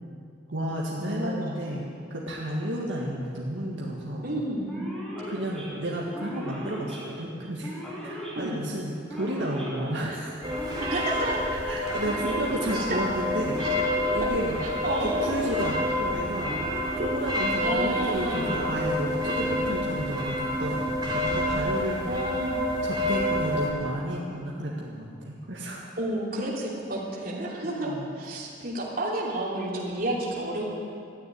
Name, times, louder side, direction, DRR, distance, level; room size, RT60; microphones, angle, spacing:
voice 1, 0.5-1.8 2.1-4.3 5.3-7.7 8.0-10.4 11.0-11.2 11.5-13.6 14.1-14.6 15.0-16.6 17.0-22.0 22.8-25.9 27.6-28.1, right 1 dB, 75° right, -4 dB, 1.8 m, -32 dB
voice 2, 1.0-1.6 4.2-4.8 8.3-8.6 10.8-11.4 12.7-13.0 14.8-15.3 17.6-18.6 22.0-22.7 26.0-30.6, right 1 dB, 50° right, -4 dB, 3.1 m, -31 dB
Male speech man speaking / Siren, 4.7-19.4, equal, 5° left, 2.9 m, -39 dB
sound 1, 10.4-23.7, left 1 dB, 25° right, 2.7 m, -28 dB
13.5 x 9.6 x 9.5 m, 2.4 s
head